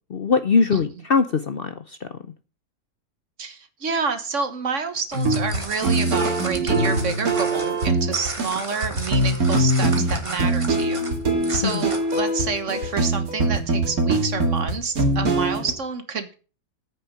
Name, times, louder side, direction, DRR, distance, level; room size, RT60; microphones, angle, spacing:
voice 1, 0.1-2.2 11.6-11.9, left 5 dB, 50° left, 10 dB, 0.8 m, -22 dB
voice 2, 3.4-11.0 11.5-16.3, right 5 dB, 55° right, 9 dB, 1.7 m, -28 dB
sound 1, 4.9-12.3, right 2 dB, 20° right, 1.7 m, -35 dB
sound 2, 5.1-15.7, right 2 dB, 75° right, 2.6 m, -23 dB
9.3 x 6.6 x 8.2 m, 0.35 s
omnidirectional pair, 1.6 m